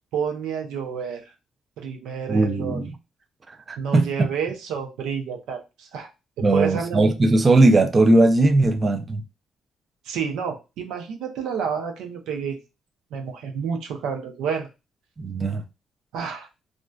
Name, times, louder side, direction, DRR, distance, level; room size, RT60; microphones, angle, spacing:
voice 1, 0.1-1.2 1.8-2.8 3.8-6.1 6.4-7.1 10.1-12.6 13.1-14.7 16.1-16.5, right 6 dB, 90° right, 0.5 m, -29 dB
voice 2, 2.3-2.9 3.5-4.3 6.4-9.2 15.2-15.6, right 2 dB, 30° right, 0.4 m, -19 dB
2.5 x 2.2 x 2.2 m
cardioid pair, 90°, 0 cm